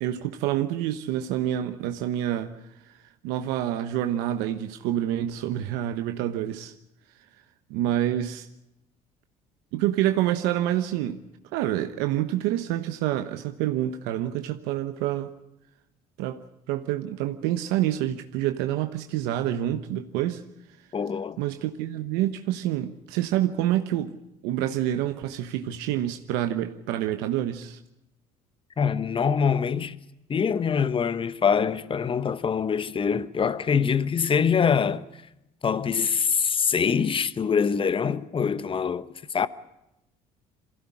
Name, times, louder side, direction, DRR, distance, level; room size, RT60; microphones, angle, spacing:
voice 1, 0.0-2.5 2.8-3.0 3.2-6.7 7.7-8.5 9.7-11.2 11.5-15.3 16.2-16.4 16.7-20.4 21.4-24.1 24.4-27.8, right 12 dB, 85° right, 1.2 m, -27 dB
voice 2, 20.9-21.4 28.8-30.0 30.3-35.0 35.6-39.5, left 6 dB, 30° left, 1.1 m, -24 dB
23.0 x 16.5 x 9.7 m
supercardioid pair, 90°, 17 cm